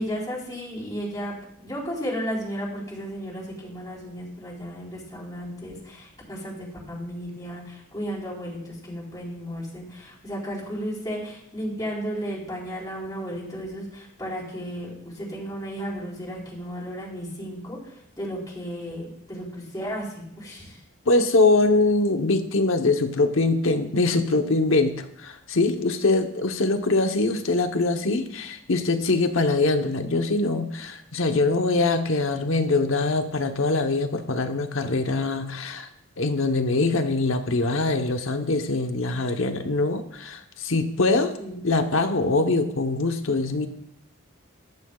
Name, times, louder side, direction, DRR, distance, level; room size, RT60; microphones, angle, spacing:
voice 1, 0.0-20.8 41.4-41.7, equal, 15° left, -6 dB, 4.1 m, -34 dB
voice 2, 21.1-35.9 36.2-41.3 41.6-43.7, left 3 dB, 70° left, 6 dB, 1.0 m, -23 dB
14.0 x 13.5 x 2.4 m, 0.74 s
head